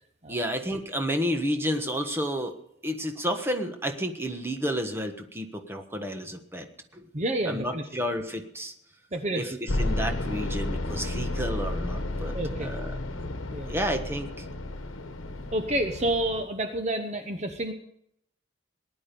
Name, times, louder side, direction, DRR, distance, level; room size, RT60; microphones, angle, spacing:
voice 1, 0.3-2.6 2.8-6.6 6.9-7.1 7.5-8.7 9.3-12.3 12.6-12.9 13.7-14.4, equal, 10° right, 5 dB, 1.3 m, -31 dB
voice 2, 7.1-7.9 9.1-9.6 12.3-12.7 13.5-13.7 15.5-17.7, right 1 dB, 35° right, 6 dB, 0.9 m, -29 dB
sound 1, 9.7-16.4, left 1 dB, 85° left, 1.1 m, -32 dB
19.0 x 11.0 x 5.3 m, 0.74 s
head